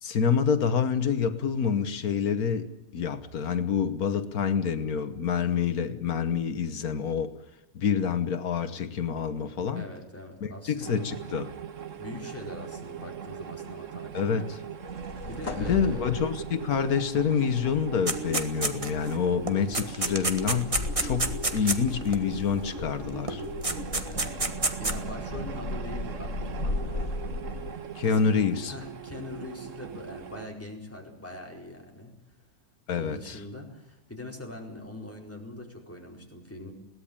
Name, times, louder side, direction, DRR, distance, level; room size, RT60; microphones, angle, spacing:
voice 1, 0.0-7.3 7.7-9.8 10.4-11.5 14.1-14.6 15.6-23.4 27.9-28.7 32.9-33.4, left 7 dB, 85° left, 10 dB, 1.7 m, -27 dB
voice 2, 9.7-11.1 12.0-14.4 14.9-16.0 17.1-17.3 24.1-26.9 28.1-28.2 28.7-32.4 32.9-36.7, left 1 dB, 10° left, 0 dB, 4.5 m, -42 dB
sound 1, 10.8-30.5, right 8 dB, 60° right, 1.5 m, -40 dB
sound 2, 14.8-27.7, left 2 dB, 65° left, 2.5 m, -37 dB
sound 3, 18.1-19.1 19.5-22.2 23.3-23.4 23.6-25.0, right 2 dB, 25° right, 1.6 m, -28 dB
22.0 x 17.5 x 8.8 m, 0.92 s
omnidirectional pair, 1.5 m